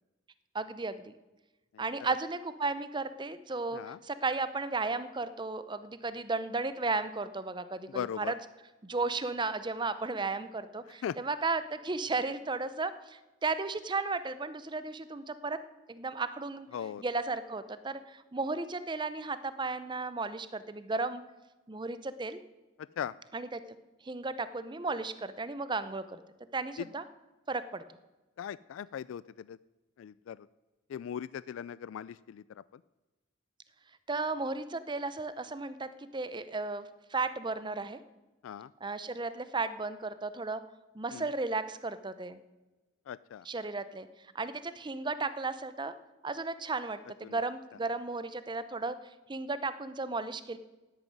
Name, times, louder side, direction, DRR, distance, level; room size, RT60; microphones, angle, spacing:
voice 1, 0.5-1.1 1.8-8.4 8.8-15.6 15.9-16.7 17.0-21.2 21.7-22.4 23.3-23.6 24.0-26.2 26.5-27.0 27.5-27.8 34.1-38.0 38.8-40.6 40.9-42.4 43.4-44.1 44.3-45.9 46.2-48.9 49.3-50.6, right 3 dB, 25° right, 13 dB, 0.6 m, -34 dB
voice 2, 7.9-8.3 11.0-11.2 16.7-17.0 22.8-23.1 26.8-26.9 28.4-29.6 30.0-30.5 30.9-32.8 38.4-38.7 41.1-41.3 43.1-43.5 47.2-47.4, left 8 dB, 80° left, 18 dB, 0.3 m, -39 dB
9.6 x 9.2 x 9.3 m, 1.1 s
head